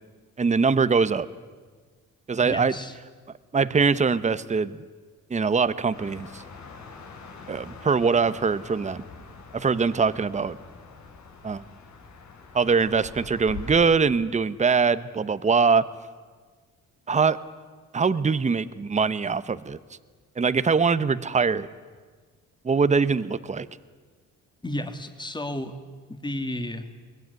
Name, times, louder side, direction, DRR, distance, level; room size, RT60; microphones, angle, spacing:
voice 1, 0.4-1.3 2.3-2.7 3.5-4.8 5.3-6.4 7.5-9.0 9.5-10.6 11.4-11.6 12.5-15.9 17.1-17.4 17.9-19.8 20.4-21.7 22.6-23.7, right 5 dB, 25° right, 14 dB, 0.9 m, -22 dB
voice 2, 2.4-3.0 24.6-25.8 26.1-26.9, left 1 dB, 15° left, 7 dB, 2.3 m, -32 dB
sound 1, 5.9-13.9, left 4 dB, 70° left, 4.1 m, -44 dB
22.5 x 20.0 x 9.6 m, 1.5 s
cardioid pair, 90°, 30 cm